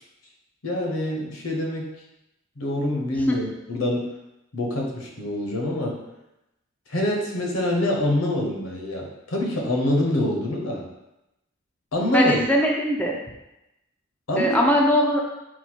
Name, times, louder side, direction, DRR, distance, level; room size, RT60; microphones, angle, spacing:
voice 1, 0.6-1.9 2.6-4.1 4.5-6.0 6.9-10.9 11.9-12.4 14.3-14.6, left 1 dB, 75° left, 0 dB, 0.8 m, -25 dB
voice 2, 12.1-13.2 14.4-15.2, left 1 dB, 5° left, -1 dB, 0.4 m, -20 dB
4.0 x 2.3 x 4.4 m, 0.91 s
head